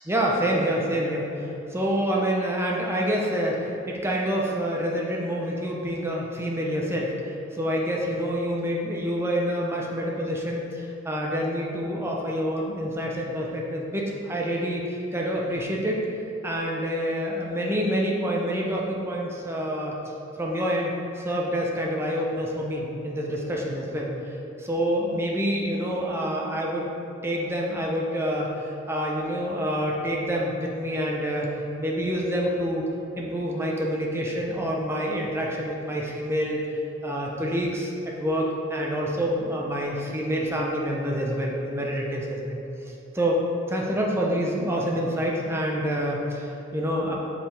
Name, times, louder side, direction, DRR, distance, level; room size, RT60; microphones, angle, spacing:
voice 1, 0.1-7.1 7.5-16.0 16.4-20.0 20.4-24.1 24.6-26.9 27.2-31.5 31.8-32.8 33.2-36.6 37.0-42.6 43.1-47.2, equal, 10° right, -2 dB, 0.7 m, -27 dB
7.3 x 5.6 x 3.3 m, 2.7 s
head